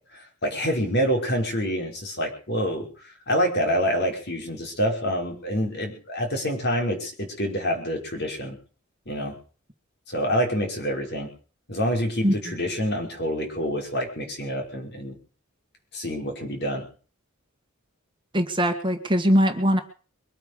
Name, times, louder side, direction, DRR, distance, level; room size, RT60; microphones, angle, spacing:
voice 1, 0.1-8.6 9.1-9.4 10.1-11.3 11.7-15.2 15.9-16.9, equal, 50° left, 3 dB, 5.3 m, -27 dB
voice 2, 18.3-19.8, equal, 20° right, 6 dB, 1.7 m, -21 dB
23.0 x 9.1 x 6.7 m, 0.41 s
head